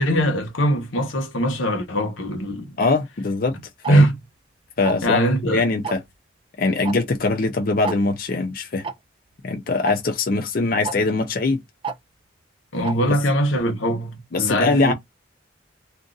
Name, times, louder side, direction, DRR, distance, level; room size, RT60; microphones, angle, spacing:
voice 1, 0.0-2.8 3.9-4.2 5.0-5.6 12.7-14.9, equal, 90° left, 1.1 m, -21 dB
voice 2, 2.8-3.5 3.9-4.1 4.8-5.2 5.5-6.0 6.6-8.8 9.4-11.6 14.3-14.9, left 3 dB, 50° left, 0.5 m, -22 dB
Tick-tock, 3.8-4.0 4.8-5.1 5.8-6.1 6.8-7.0 7.2-7.3 7.8-8.0 8.8-8.9 9.8-10.0 10.8-11.0 11.8-12.0 12.8-13.0, right 5 dB, 25° right, 0.3 m, -28 dB
2.6 x 2.5 x 3.8 m
head